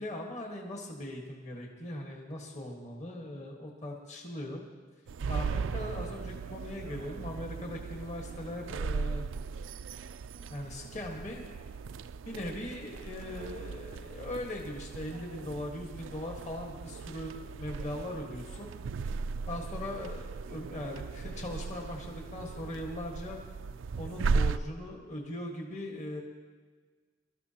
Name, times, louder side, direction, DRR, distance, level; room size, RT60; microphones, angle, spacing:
voice 1, 0.0-4.6 5.3-9.3 10.5-11.5 12.2-18.7 19.5-23.4 24.0-26.2, left 1 dB, 35° left, 0 dB, 1.6 m, -40 dB
sound 1, 5.1-24.6, right 4 dB, 80° right, 0.4 m, -37 dB
23.0 x 13.0 x 2.9 m, 1.5 s
head